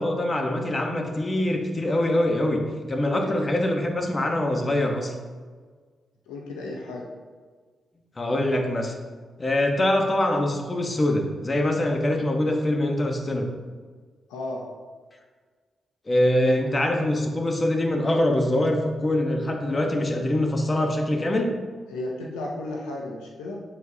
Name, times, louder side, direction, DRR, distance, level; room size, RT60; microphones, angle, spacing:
voice 1, 0.0-2.6 2.9-5.1 8.2-8.9 9.4-13.5 16.1-21.5, left 1 dB, 35° left, 3 dB, 1.1 m, -24 dB
voice 2, 3.1-3.4 6.3-7.1 14.3-14.7 16.4-16.6 21.9-23.6, left 2 dB, 90° left, -1 dB, 0.7 m, -34 dB
7.9 x 4.7 x 2.8 m, 1.5 s
hypercardioid pair, 40°, 0 cm